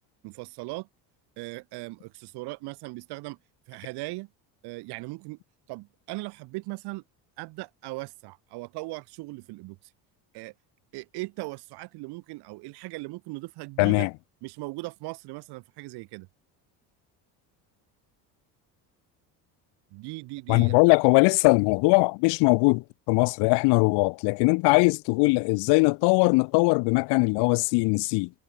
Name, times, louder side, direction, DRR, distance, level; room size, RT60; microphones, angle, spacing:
voice 1, 0.2-0.9 1.4-3.4 3.7-4.3 4.6-5.4 5.7-7.0 7.4-9.8 10.3-10.5 10.9-14.1 14.4-16.3 19.9-20.8, right 23 dB, 75° right, 2.8 m, -38 dB
voice 2, 13.8-14.1 20.5-28.3, left 29 dB, 90° left, 0.9 m, -21 dB
cardioid pair, 160°, 39 cm